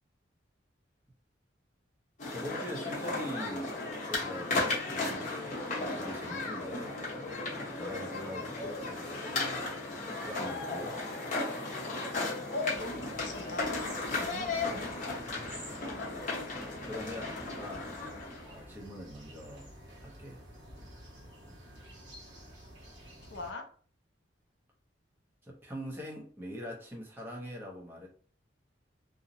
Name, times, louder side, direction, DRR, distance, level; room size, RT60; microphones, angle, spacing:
sound 1, 2.2-18.6, left 3 dB, 40° left, 0.8 m, -35 dB
voice 1, 2.3-3.8 4.1-7.0 7.7-9.7 10.2-11.0 16.7-17.9 18.4-19.7 20.0-20.4 25.4-28.1, equal, 10° right, 0.6 m, -43 dB
voice 2, 12.5-15.2 23.3-23.7, left 3 dB, 65° left, 0.5 m, -40 dB
sound 2, 12.7-23.5, equal, 70° right, 0.9 m, -51 dB
2.6 x 2.0 x 2.7 m
head